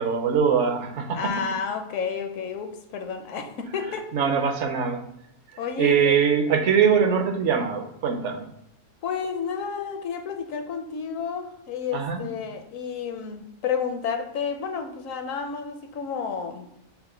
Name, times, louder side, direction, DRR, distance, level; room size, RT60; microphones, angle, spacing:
voice 1, 0.0-1.2 4.1-5.0 5.8-8.5 11.9-12.3, right 7 dB, 65° right, 5 dB, 0.9 m, -22 dB
voice 2, 1.1-4.1 5.6-6.1 9.0-16.7, left 6 dB, 70° left, 6 dB, 1.0 m, -31 dB
5.8 x 2.1 x 4.3 m, 0.78 s
omnidirectional pair, 1.5 m